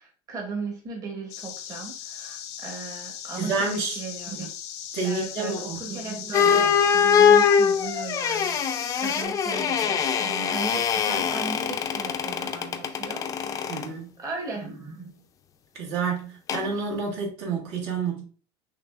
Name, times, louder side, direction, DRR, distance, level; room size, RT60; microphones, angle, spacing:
voice 1, 0.0-4.5 5.0-15.2, right 4 dB, 25° right, 0.9 m, -37 dB
sound 1, 1.3-9.2, left 10 dB, 80° left, 0.7 m, -38 dB
voice 2, 3.3-4.0 4.9-5.8 13.7-14.1 15.7-18.2, right 4 dB, 75° right, 1.7 m, -29 dB
sound 2, 6.3-13.9 16.5-16.7, left 7 dB, 25° left, 0.4 m, -23 dB
5.7 x 2.8 x 2.4 m
supercardioid pair, 140°, 14 cm